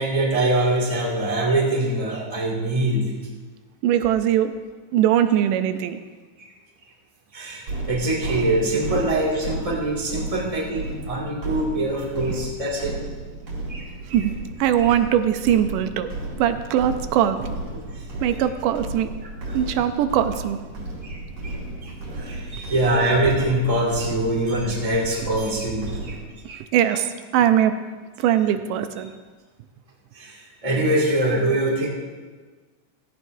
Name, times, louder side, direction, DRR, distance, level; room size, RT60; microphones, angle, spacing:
voice 1, 0.0-3.1 6.4-6.5 7.3-13.0 13.7-13.9 14.8-14.9 17.9-18.0 19.5-19.6 21.0-21.2 21.4-26.2 26.5-26.6 30.1-31.9, right 1 dB, 15° right, -3 dB, 1.8 m, -24 dB
voice 2, 3.8-4.5 4.9-6.0 14.1-14.3 14.6-16.1 16.4-17.6 18.2-19.1 19.5-20.6 26.5-27.7 28.2-29.1, right 10 dB, 85° right, 9 dB, 2.2 m, -21 dB
sound 1, 7.7-26.2, right 2 dB, 55° right, 3.7 m, -34 dB
16.0 x 14.5 x 2.7 m, 1.4 s
omnidirectional pair, 3.7 m